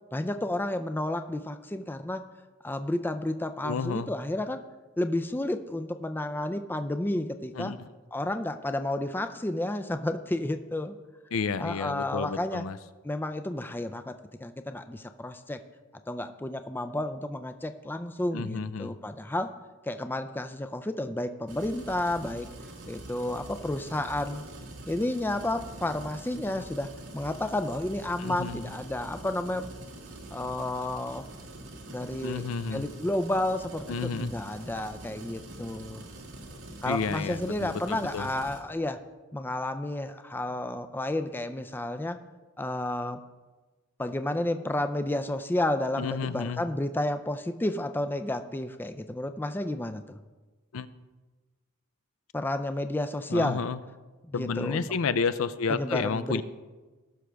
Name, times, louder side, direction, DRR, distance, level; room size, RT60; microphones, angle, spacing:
voice 1, 0.1-2.2 2.6-4.6 5.0-7.7 8.1-11.0 11.6-12.6 13.0-14.1 14.4-15.6 16.1-19.5 19.9-22.5 22.9-24.4 24.9-26.9 27.1-29.7 30.3-31.3 31.9-32.4 32.7-36.1 36.8-39.0 39.3-42.2 42.6-43.2 44.0-50.2 52.3-53.6 54.3-54.9 55.7-56.4, left 1 dB, 10° left, 9 dB, 0.3 m, -31 dB
voice 2, 3.6-4.1 7.5-7.8 11.3-12.8 18.3-19.0 28.2-28.6 32.2-32.8 33.9-34.3 36.9-38.3 46.0-46.6 50.7-50.9 53.3-53.8 54.3-56.4, left 5 dB, 75° left, 14 dB, 0.5 m, -31 dB
sound 1, 21.5-38.6, right 2 dB, 90° right, 1.8 m, -44 dB
18.5 x 6.3 x 3.4 m, 1.3 s
head